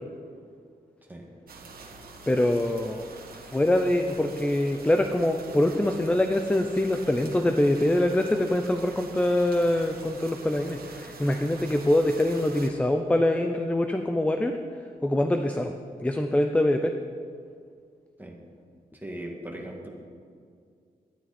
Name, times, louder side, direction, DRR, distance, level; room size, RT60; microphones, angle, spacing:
sound 1, 1.5-12.7, right 3 dB, 70° right, 1.8 m, -45 dB
voice 1, 2.3-3.0 3.5-14.5 15.0-15.7 16.0-16.9, left 1 dB, 10° left, 6 dB, 0.5 m, -24 dB
voice 2, 19.0-19.9, right 1 dB, 10° right, -1 dB, 2.0 m, -38 dB
18.5 x 12.0 x 4.3 m, 2.2 s
wide cardioid pair, 165°, 16 cm